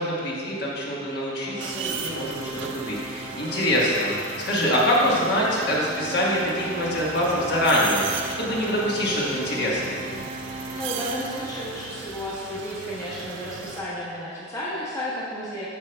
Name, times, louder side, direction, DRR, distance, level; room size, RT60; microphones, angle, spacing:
voice 1, 0.0-10.0, equal, 55° left, -5 dB, 1.3 m, -24 dB
Organ, 1.4-12.2, right 2 dB, 25° right, 1.1 m, -38 dB
sound 1, 1.6-13.8, right 6 dB, 70° right, 0.4 m, -37 dB
voice 2, 10.7-15.7, left 1 dB, 15° left, -8 dB, 1.0 m, -33 dB
9.1 x 6.8 x 2.2 m, 2.3 s
head